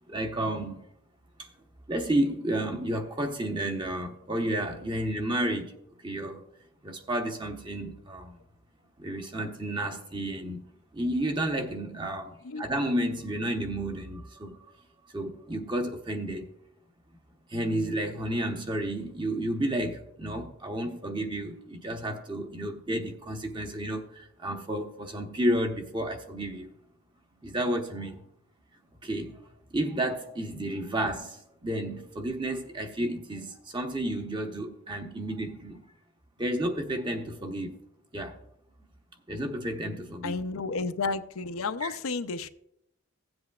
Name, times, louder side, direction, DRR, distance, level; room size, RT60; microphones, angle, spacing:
voice 1, 0.1-0.8 1.4-1.5 1.9-5.8 6.0-6.4 6.8-8.3 9.0-10.6 10.9-14.7 15.1-16.5 17.5-26.7 27.4-28.2 29.0-29.4 29.7-35.8 36.4-37.7 38.1-38.3 39.3-40.3 41.8-41.9, right 1 dB, 20° right, 4 dB, 0.9 m, -31 dB
voice 2, 40.2-42.5, left 4 dB, 90° left, 10 dB, 0.6 m, -32 dB
16.5 x 7.8 x 2.4 m, 0.79 s
head